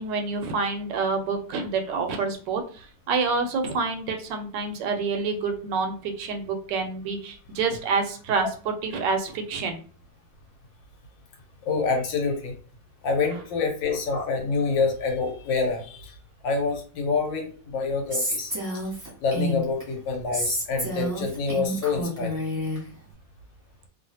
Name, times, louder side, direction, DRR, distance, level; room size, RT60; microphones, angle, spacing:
voice 1, 0.0-9.8, right 4 dB, 75° right, 6 dB, 1.2 m, -28 dB
voice 2, 11.6-12.5 13.0-16.2 16.4-18.5 19.2-22.4, left 4 dB, 85° left, 3 dB, 1.5 m, -27 dB
Female speech woman speaking, 18.1-19.8 20.3-22.8, equal, 15° right, 0.8 m, -29 dB
3.1 x 2.4 x 2.6 m, 0.42 s
omnidirectional pair, 2.0 m